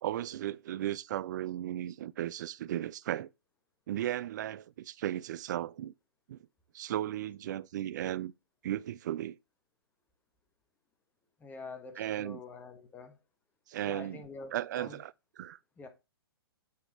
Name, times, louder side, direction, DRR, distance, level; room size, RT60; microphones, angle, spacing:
voice 1, 0.0-3.3 3.9-5.9 6.3-6.4 6.7-8.3 8.6-9.4 12.0-12.4 13.7-14.2 14.5-15.6, right 12 dB, 45° right, 0.4 m, -35 dB
voice 2, 11.4-13.1 13.8-15.0 15.8-15.9, left 4 dB, 15° left, 1.1 m, -46 dB
8.4 x 4.7 x 3.2 m
figure-of-eight pair, 125°, 13 cm